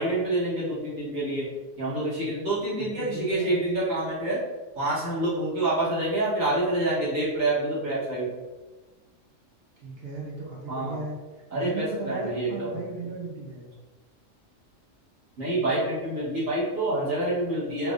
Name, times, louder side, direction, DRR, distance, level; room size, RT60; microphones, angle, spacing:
voice 1, 0.0-1.5 1.8-4.4 4.7-8.3 10.7-11.0 11.5-12.8 15.4-17.9, right 1 dB, 85° right, -9 dB, 1.7 m, -27 dB
voice 2, 2.8-3.6 9.8-11.2 11.5-13.7, right 3 dB, 60° right, -3 dB, 0.7 m, -36 dB
3.3 x 3.2 x 2.5 m, 1.2 s
omnidirectional pair, 1.4 m